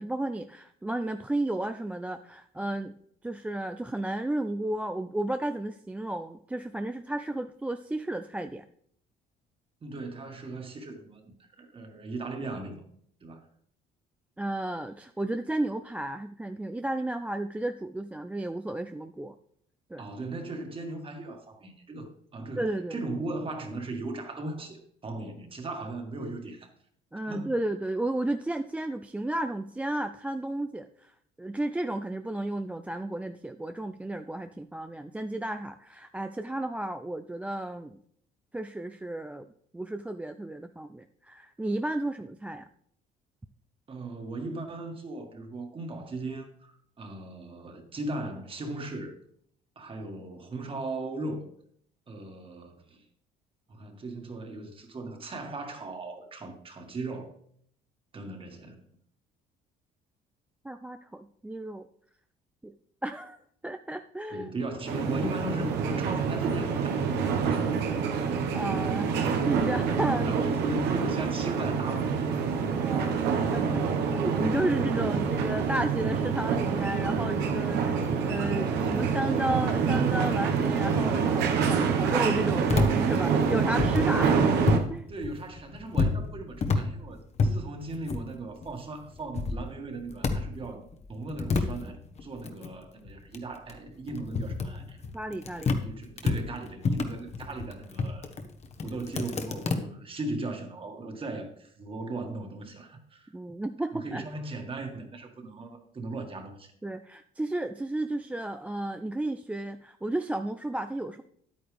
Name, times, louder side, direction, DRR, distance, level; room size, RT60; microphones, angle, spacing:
voice 1, 0.0-2.9 3.2-8.7 14.4-19.3 19.9-20.0 22.6-23.0 27.1-31.1 31.4-38.0 38.5-39.5 39.7-42.7 60.6-61.8 62.6-62.7 63.0-63.4 63.6-64.5 68.2-70.4 72.7-84.6 84.9-85.1 95.1-95.8 103.3-104.2 106.8-111.2, right 1 dB, 10° right, 8 dB, 0.3 m, -33 dB
voice 2, 9.8-12.8 13.2-13.4 20.0-26.7 27.3-27.5 43.9-49.2 49.8-51.5 52.1-53.0 53.7-57.3 58.1-58.8 64.3-67.7 70.2-72.4 85.1-95.0 95.7-98.3 98.8-103.3 103.9-106.7, right 2 dB, 30° right, 4 dB, 1.8 m, -38 dB
sound 1, 64.9-84.8, right 6 dB, 85° right, 1.3 m, -27 dB
sound 2, 82.7-84.9 85.2-88.8 89.1-90.6 90.9-95.9 96.2-99.8, left 3 dB, 40° left, 1.1 m, -29 dB
10.0 x 8.8 x 3.4 m, 0.64 s
cardioid pair, 110°, 17 cm